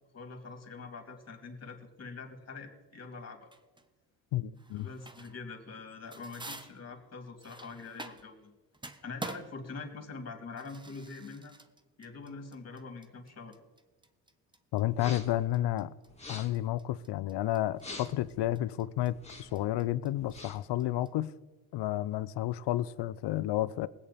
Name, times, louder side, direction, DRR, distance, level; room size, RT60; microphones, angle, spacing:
voice 1, 0.1-3.5 4.7-8.5 9.0-11.5 12.0-13.5, left 4 dB, 35° left, 2.8 m, -44 dB
sound 1, 3.5-3.9 4.6-5.5 5.8-8.5 8.7-21.1, right 2 dB, 10° right, 1.0 m, -48 dB
voice 2, 4.3-4.9 14.7-15.9 16.3-21.3 21.7-23.9, left 14 dB, 60° left, 0.7 m, -31 dB
sound 2, 14.9-15.4 16.1-16.7 17.7-18.3 19.1-19.6 20.2-20.7, left 3 dB, 15° left, 2.2 m, -46 dB
20.0 x 8.6 x 4.2 m
supercardioid pair, 65°, 46 cm